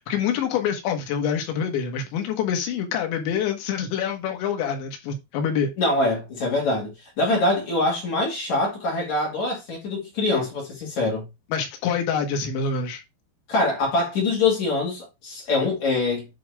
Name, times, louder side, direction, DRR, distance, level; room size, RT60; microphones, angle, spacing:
voice 1, 0.0-5.7 11.5-13.0, left 7 dB, 75° left, 3.5 m, -26 dB
voice 2, 5.8-6.9 7.2-11.2 13.5-16.3, left 2 dB, 45° left, 3.1 m, -24 dB
9.4 x 3.8 x 3.5 m
omnidirectional pair, 5.4 m